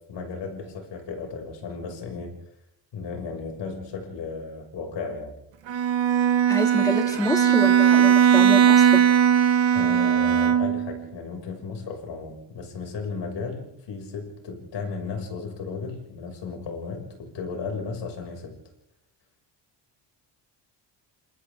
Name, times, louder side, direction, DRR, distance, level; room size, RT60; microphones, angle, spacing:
voice 1, 0.1-2.3 2.9-5.4 9.7-18.6, left 4 dB, 70° left, 2 dB, 6.5 m, -34 dB
Bowed string instrument, 5.7-11.0, right 9 dB, 80° right, 1.9 m, -19 dB
voice 2, 6.5-9.1, left 1 dB, 10° left, 5 dB, 2.3 m, -28 dB
29.5 x 27.5 x 3.7 m, 0.77 s
cardioid pair, 125°, 45 cm